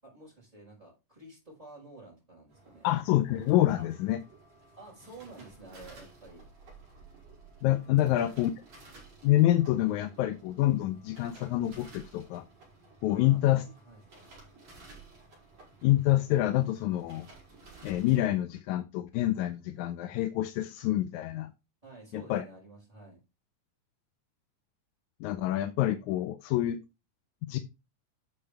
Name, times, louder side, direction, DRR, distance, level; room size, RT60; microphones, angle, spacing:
voice 1, 0.0-2.9 3.8-3.9 4.8-6.5 7.9-8.4 13.1-14.0 21.8-23.2, right 2 dB, 10° right, 5.4 m, -51 dB
sound 1, 2.5-18.3, right 3 dB, 50° right, 6.8 m, -54 dB
voice 2, 2.8-4.2 7.6-8.5 9.2-12.4 13.0-13.6 15.8-17.3 17.8-21.5 22.1-22.4 25.2-26.8 27.5-27.6, left 14 dB, 75° left, 2.0 m, -27 dB
12.0 x 6.7 x 3.4 m
omnidirectional pair, 3.7 m